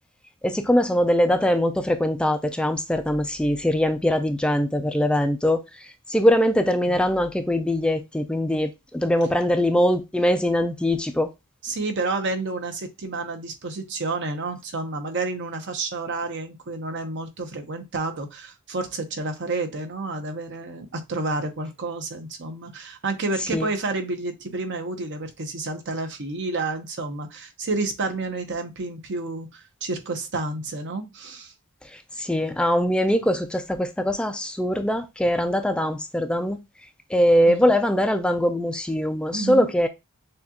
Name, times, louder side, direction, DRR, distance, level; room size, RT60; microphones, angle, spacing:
voice 1, 0.4-5.6 6.1-11.3 23.5-23.7 32.2-36.6 37.1-39.9, equal, 5° left, 0.3 m, -22 dB
voice 2, 11.6-31.5 37.5-37.7 39.3-39.7, right 3 dB, 55° right, 0.9 m, -30 dB
6.5 x 2.3 x 2.8 m
head